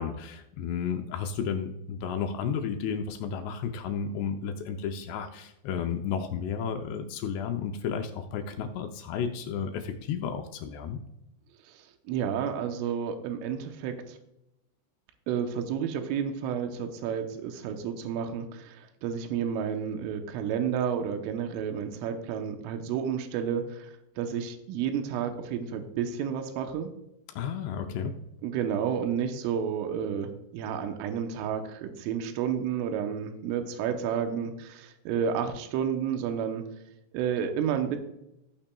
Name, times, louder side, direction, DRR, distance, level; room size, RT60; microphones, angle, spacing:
voice 1, 0.0-11.0 27.4-28.2, left 7 dB, 80° left, 5 dB, 2.5 m, -32 dB
voice 2, 11.6-14.2 15.3-26.9 28.4-36.6 37.1-38.0, right 8 dB, 85° right, 6 dB, 3.4 m, -31 dB
15.5 x 8.7 x 2.3 m, 0.85 s
omnidirectional pair, 5.6 m